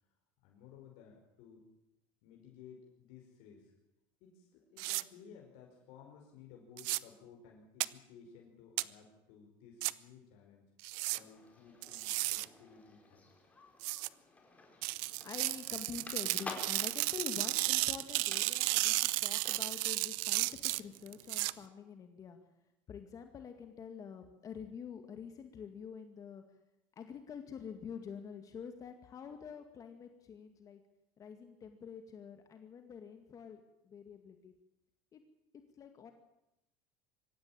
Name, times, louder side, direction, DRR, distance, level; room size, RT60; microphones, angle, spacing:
voice 1, 0.4-1.6 2.2-3.7 4.2-10.6 11.1-13.3, left 7 dB, 65° left, 0 dB, 5.4 m, -57 dB
sound 1, 4.8-5.0 6.8-7.0 7.8-7.9 8.8-8.9 9.8-9.9 10.8-11.2 11.8-12.5 13.8-14.1 14.8-21.5, right 22 dB, 75° right, 0.8 m, -33 dB
sound 2, 10.9-19.8, left 3 dB, 10° left, 4.3 m, -52 dB
voice 2, 15.2-22.4 22.9-26.4 26.9-30.8 31.2-34.5 35.1-35.2 35.8-36.1, left 7 dB, 30° left, 6 dB, 2.0 m, -47 dB
24.0 x 16.0 x 8.9 m, 0.89 s
cardioid pair, 145°, 12 cm